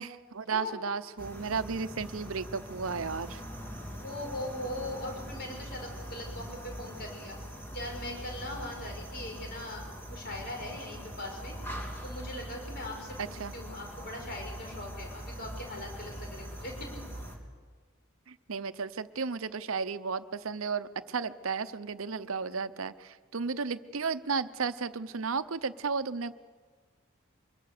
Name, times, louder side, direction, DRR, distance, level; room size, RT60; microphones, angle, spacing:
voice 1, 0.0-3.4 13.2-13.5 18.3-26.3, right 5 dB, 85° right, 13 dB, 0.8 m, -34 dB
sound 1, 1.2-17.4, equal, 10° left, 3.1 m, -42 dB
voice 2, 4.0-7.4 7.7-11.6 12.0-17.0, left 1 dB, 50° left, 1 dB, 5.3 m, -40 dB
24.0 x 22.0 x 6.7 m, 1.5 s
head